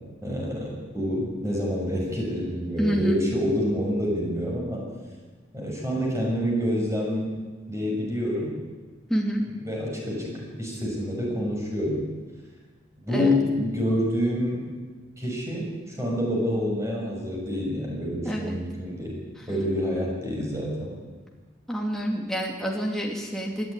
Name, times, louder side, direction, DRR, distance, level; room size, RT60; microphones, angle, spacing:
voice 1, 0.2-4.8 5.5-7.3 7.7-8.5 9.6-12.0 13.0-14.6 15.2-19.2 19.5-20.9, equal, 15° right, -2 dB, 6.2 m, -27 dB
voice 2, 2.8-3.2 9.1-9.5 13.1-13.4 18.2-18.6 19.4-19.5 21.7-23.7, right 1 dB, 5° left, -1 dB, 2.4 m, -27 dB
26.5 x 12.0 x 9.8 m, 1.4 s
head